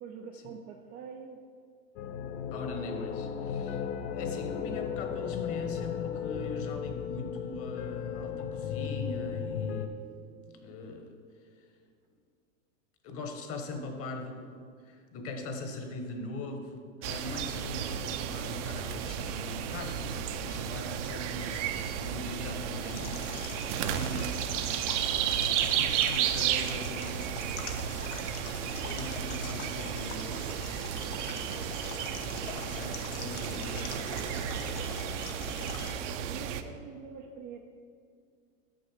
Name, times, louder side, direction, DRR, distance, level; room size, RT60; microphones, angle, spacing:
voice 1, 0.0-1.4 35.0-35.5 36.2-37.6, right 6 dB, 25° right, 2 dB, 0.4 m, -45 dB
sound 1, 2.0-9.9, left 8 dB, 55° left, 0.7 m, -35 dB
voice 2, 2.5-3.9 4.1-10.0 10.5-11.1 11.6-11.7 13.0-14.6 14.8-23.3 23.9-24.4 25.2-27.2 28.8-31.0 32.6-33.9, left 2 dB, 35° left, 4 dB, 1.2 m, -41 dB
sound 2, 17.0-36.6, right 9 dB, 60° right, 0.7 m, -33 dB
sound 3, 22.9-36.0, left 6 dB, 80° left, 1.2 m, -44 dB
6.6 x 6.5 x 6.4 m, 2.2 s
supercardioid pair, 130°, 41 cm